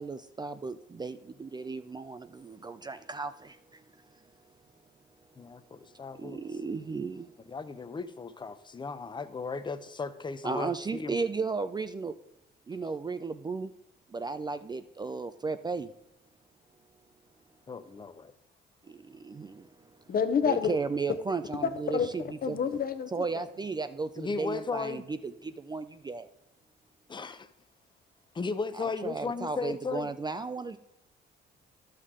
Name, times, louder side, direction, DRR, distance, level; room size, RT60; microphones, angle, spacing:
voice 1, 0.0-3.8 6.1-7.3 10.4-12.1 12.7-13.7 14.1-15.9 18.8-19.7 20.5-22.2 22.5-22.6 23.1-26.3 28.7-30.8, right 4 dB, 20° right, 11 dB, 0.3 m, -35 dB
voice 2, 5.4-6.4 7.5-11.2 17.7-18.3 24.2-25.0 27.1-27.5 28.3-30.1, left 4 dB, 25° left, 12 dB, 0.6 m, -36 dB
voice 3, 20.1-20.7 21.6-22.1 22.4-23.4, left 7 dB, 50° left, 10 dB, 0.8 m, -28 dB
11.0 x 6.5 x 3.7 m, 0.88 s
cardioid pair, 90°, 20 cm